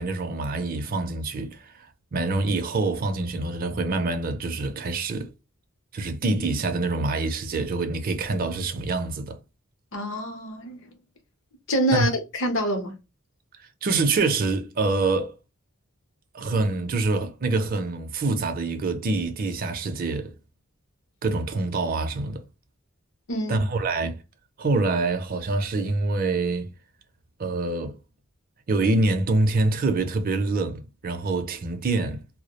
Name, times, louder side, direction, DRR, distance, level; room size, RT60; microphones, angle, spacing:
voice 1, 0.0-5.3 5.9-9.4 11.9-12.1 13.8-15.4 16.3-20.3 21.2-22.4 23.5-24.2 24.6-26.7 27.4-28.0 28.7-32.2, right 3 dB, 40° right, 0.4 m, -25 dB
voice 2, 9.9-10.9 11.7-13.0 23.3-23.7, equal, 60° left, 0.7 m, -26 dB
2.2 x 2.0 x 2.8 m
head